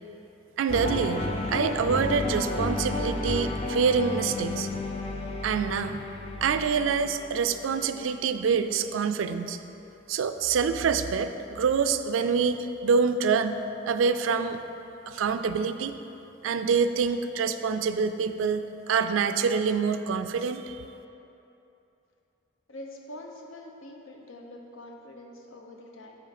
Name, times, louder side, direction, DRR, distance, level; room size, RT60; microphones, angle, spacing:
voice 1, 0.6-4.7 5.4-6.0 6.4-9.6 10.1-13.6 13.9-14.6 15.1-15.9 16.4-20.8, right 5 dB, 80° right, 10 dB, 0.3 m, -26 dB
sound 1, 0.7-8.8, left 2 dB, 30° left, 0.5 m, -32 dB
voice 2, 22.7-26.2, left 1 dB, 85° left, 1 dB, 0.8 m, -44 dB
8.6 x 3.2 x 5.8 m, 2.9 s
head